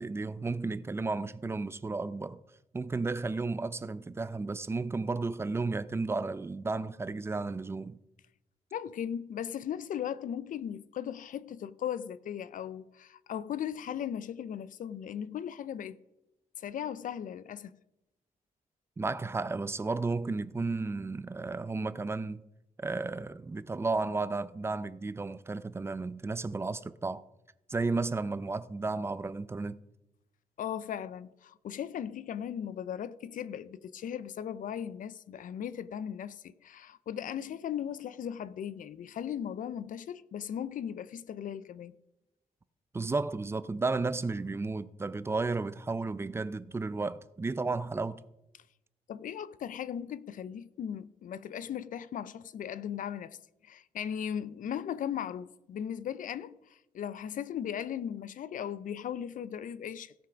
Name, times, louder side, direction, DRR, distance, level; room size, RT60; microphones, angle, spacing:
voice 1, 0.0-2.4 2.7-8.0 19.0-22.4 22.8-27.2 27.7-29.8 42.9-48.2, right 3 dB, 15° right, 0.4 m, -33 dB
voice 2, 8.7-16.0 16.6-17.7 30.6-41.9 49.1-53.4 53.6-60.1, left 9 dB, 65° left, 0.5 m, -37 dB
16.0 x 5.8 x 5.0 m
wide cardioid pair, 135°, 15 cm